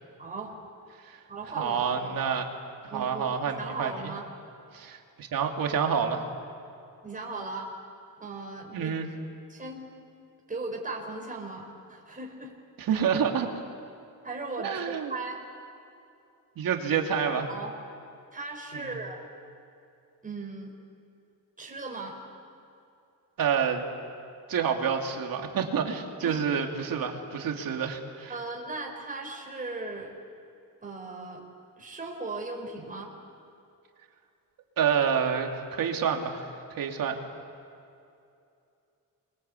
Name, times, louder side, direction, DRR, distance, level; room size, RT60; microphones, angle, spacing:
voice 1, 0.2-0.5 1.3-2.1 2.9-4.3 7.0-7.7 8.2-9.0 9.5-9.9 10.5-12.5 12.9-13.0 14.2-15.3 17.5-17.7 18.3-19.2 20.2-20.7 21.6-22.2 26.2-26.4 27.0-27.1 28.3-30.1 30.8-31.5 31.8-33.1, right 3 dB, 25° right, 0 dB, 5.3 m, -37 dB
voice 2, 1.5-2.5 2.8-4.1 4.7-6.2 8.7-9.1 12.8-13.5 14.6-15.1 16.6-17.5 18.7-19.0 23.4-23.9 24.5-28.3 34.8-36.4 36.7-37.2, right 7 dB, 70° right, 3 dB, 3.0 m, -28 dB
28.5 x 23.5 x 8.5 m, 2.6 s
cardioid pair, 105°, 35 cm